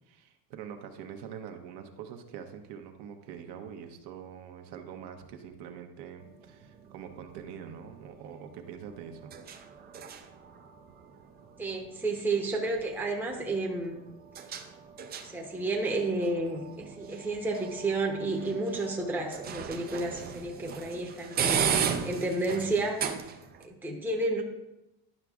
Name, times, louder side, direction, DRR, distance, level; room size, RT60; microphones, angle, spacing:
voice 1, 0.1-9.4, right 8 dB, 70° right, 5 dB, 0.9 m, -44 dB
sound 1, 6.2-23.7, right 7 dB, 25° right, 0.3 m, -37 dB
voice 2, 11.6-14.0 15.2-23.0 23.6-24.4, right 2 dB, 5° right, -1 dB, 0.7 m, -31 dB
11.0 x 6.0 x 2.4 m, 0.94 s
cardioid pair, 150°, 42 cm